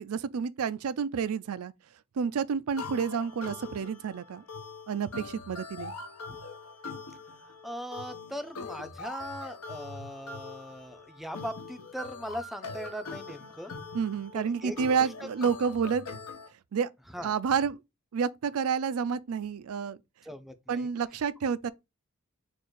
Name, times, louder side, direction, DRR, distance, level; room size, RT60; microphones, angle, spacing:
voice 1, 0.0-1.7 2.2-4.4 4.9-5.9 13.9-16.1 16.7-16.9 17.2-17.8 18.1-20.0 20.7-21.7, right 6 dB, 70° right, 0.4 m, -29 dB
sound 1, 2.8-16.5, left 4 dB, 70° left, 0.9 m, -43 dB
voice 2, 7.6-13.8 14.3-15.5 17.1-17.3 20.2-20.9, equal, ahead, 0.5 m, -40 dB
4.4 x 2.5 x 4.5 m
head